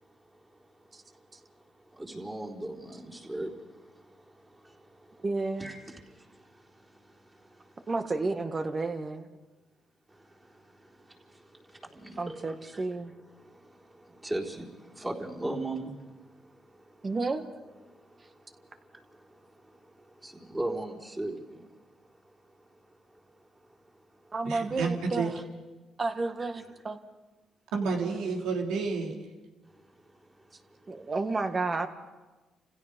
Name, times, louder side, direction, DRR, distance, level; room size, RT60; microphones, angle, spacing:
voice 1, 2.0-3.5 5.6-6.0 11.9-12.8 14.2-14.7 15.0-15.9 20.2-21.6, right 1 dB, 15° right, -3 dB, 4.1 m, -36 dB
voice 2, 5.2-5.7 7.9-9.3 12.2-13.1 17.0-17.4 24.3-25.4 26.0-27.0 30.9-31.9, right 3 dB, 30° right, 7 dB, 1.7 m, -31 dB
voice 3, 24.4-25.3 27.7-29.2, right 4 dB, 90° right, 1 dB, 3.4 m, -30 dB
29.5 x 16.5 x 5.3 m, 1.2 s
cardioid pair, 90°, 0 cm